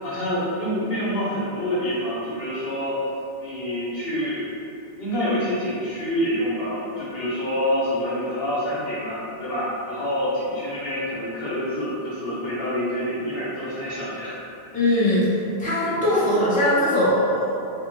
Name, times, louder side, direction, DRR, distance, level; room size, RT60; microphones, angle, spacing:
voice 1, 0.0-3.0 3.4-4.5 5.0-15.0 15.8-16.0, equal, 65° left, -7 dB, 0.9 m, -27 dB
voice 2, 14.7-15.3 15.6-17.5, left 1 dB, 10° left, -11 dB, 0.7 m, -20 dB
3.5 x 2.1 x 2.9 m, 2.6 s
omnidirectional pair, 1.1 m